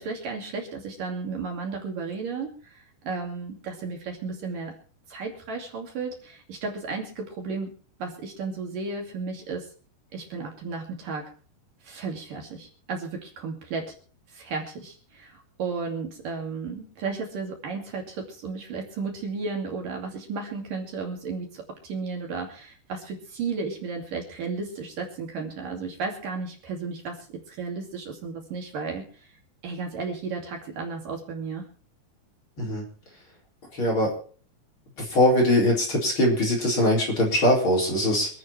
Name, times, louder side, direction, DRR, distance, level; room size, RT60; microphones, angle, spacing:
voice 1, 0.0-4.7 5.1-7.7 8.0-9.7 10.1-11.3 11.8-13.9 14.3-29.3 29.6-31.7, right 4 dB, 60° right, 1 dB, 4.1 m, -34 dB
voice 2, 33.7-34.1 35.0-38.3, left 1 dB, 30° left, -2 dB, 4.6 m, -22 dB
26.0 x 8.6 x 4.4 m, 0.42 s
omnidirectional pair, 4.6 m